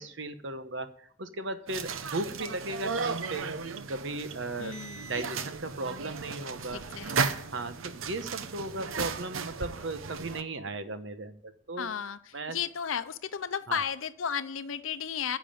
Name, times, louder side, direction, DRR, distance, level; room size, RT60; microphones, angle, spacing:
voice 1, 0.0-3.5 3.9-4.8 5.0-6.8 7.5-11.9 12.3-12.6 13.7-13.8, right 2 dB, 65° right, 10 dB, 1.1 m, -36 dB
sound 1, 1.7-10.4, right 5 dB, 85° right, 0.8 m, -35 dB
voice 2, 4.6-5.1 6.7-7.4 11.8-15.4, left 7 dB, 85° left, 12 dB, 0.7 m, -34 dB
10.5 x 7.4 x 8.8 m, 0.64 s
head